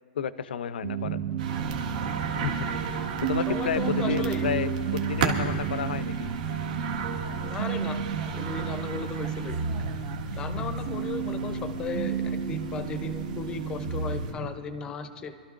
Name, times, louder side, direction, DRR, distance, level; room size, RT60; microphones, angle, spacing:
voice 1, 0.1-1.2 2.4-2.7 3.2-6.3, left 8 dB, 90° left, 15 dB, 0.5 m, -31 dB
sound 1, 0.8-14.5, right 6 dB, 75° right, 1.4 m, -32 dB
sound 2, 1.4-14.3, right 5 dB, 55° right, 1.6 m, -35 dB
voice 2, 3.5-4.5 7.4-8.0 8.3-9.6 10.4-15.3, left 5 dB, 15° left, 10 dB, 0.6 m, -36 dB
Vehicle, 4.3-13.4, right 6 dB, 30° right, 0.9 m, -49 dB
26.5 x 13.0 x 2.5 m, 2.5 s
hypercardioid pair, 165°, 5 cm